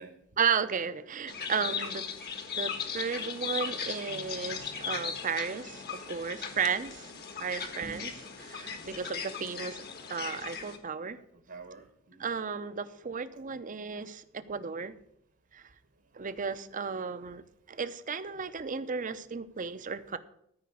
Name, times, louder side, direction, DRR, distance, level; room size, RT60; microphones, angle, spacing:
voice 1, 0.4-2.0 2.5-7.1 7.4-8.1 8.4-9.8 10.1-11.2 12.2-14.9 15.5-15.6 16.1-17.4 17.7-20.2, right 6 dB, 40° right, 12 dB, 0.7 m, -34 dB
sound 1, 1.3-10.8, left 6 dB, 50° left, 1.4 m, -38 dB
voice 2, 4.1-4.7 7.3-7.4 7.8-9.0 11.1-12.3, right 3 dB, 55° right, 7 dB, 1.2 m, -49 dB
13.5 x 5.1 x 8.5 m, 0.74 s
head